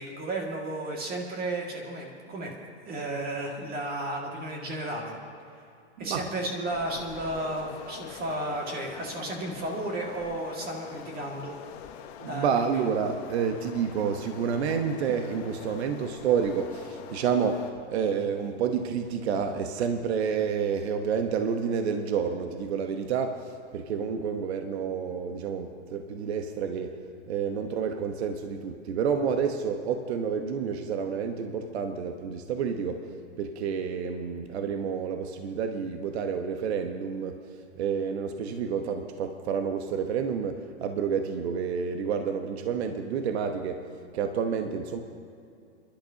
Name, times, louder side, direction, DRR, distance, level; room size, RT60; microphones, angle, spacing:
voice 1, 0.0-2.5 2.8-5.2 6.0-11.5 12.3-12.8, right 1 dB, 25° right, 0 dB, 2.1 m, -33 dB
sound 1, 6.7-17.7, left 9 dB, 40° left, 1.0 m, -45 dB
voice 2, 12.2-27.0 27.3-33.1 33.4-43.8 44.1-45.0, right 6 dB, 65° right, 6 dB, 1.1 m, -29 dB
30.0 x 11.5 x 2.8 m, 2.5 s
hypercardioid pair, 125°, 35 cm